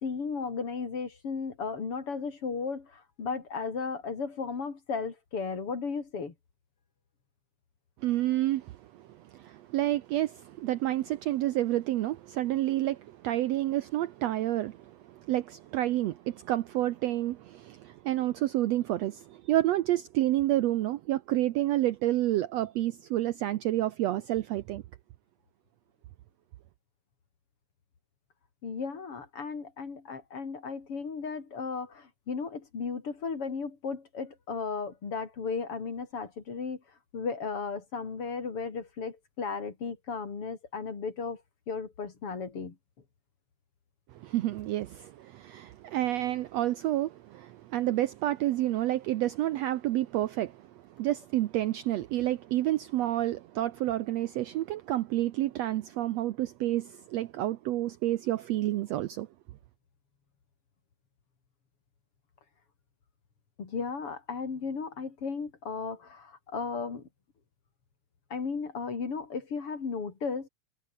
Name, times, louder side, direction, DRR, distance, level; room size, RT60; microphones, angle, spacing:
voice 1, 0.0-6.3 28.6-36.8 37.1-41.4 41.7-42.8 63.6-67.0 68.3-70.5, left 5 dB, 45° left, 3.9 m, -35 dB
voice 2, 8.0-9.1 9.3-24.8 44.2-50.7 51.0-59.3, right 14 dB, 70° right, 1.6 m, -29 dB
omnidirectional pair, 3.6 m